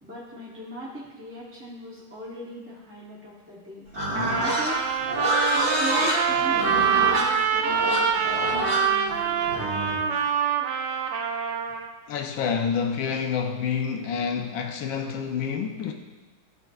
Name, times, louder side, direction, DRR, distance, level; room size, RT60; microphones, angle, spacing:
voice 1, 0.0-3.9 4.4-4.8 5.5-10.1, equal, 15° right, -6 dB, 0.5 m, -38 dB
Livestock farm animals working animals, 3.9-10.0, equal, 40° right, 2.2 m, -27 dB
Trumpet, 4.1-11.9, right 7 dB, 70° right, 1.1 m, -25 dB
voice 2, 12.1-15.9, left 6 dB, 75° left, 4 dB, 1.4 m, -28 dB
12.5 x 4.4 x 2.4 m, 1.2 s
omnidirectional pair, 2.2 m